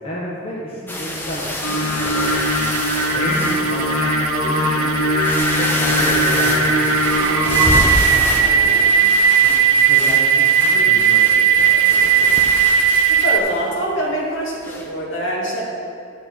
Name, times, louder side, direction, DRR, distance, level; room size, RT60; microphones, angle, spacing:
voice 1, 0.0-2.3 3.1-4.9 5.5-9.2 9.4-12.4, equal, 25° left, -7 dB, 1.2 m, -32 dB
sound 1, 0.9-4.1 4.6-4.7 5.1-13.7 14.6-14.9, left 1 dB, 10° left, 0.7 m, -27 dB
Singing, 1.6-7.8, equal, 80° left, 1.6 m, -20 dB
sound 2, 2.2-13.4, right 7 dB, 65° right, 0.5 m, -18 dB
voice 2, 8.3-9.1 13.1-15.6, equal, 55° left, -4 dB, 1.8 m, -25 dB
10.5 x 6.4 x 4.4 m, 2.4 s
head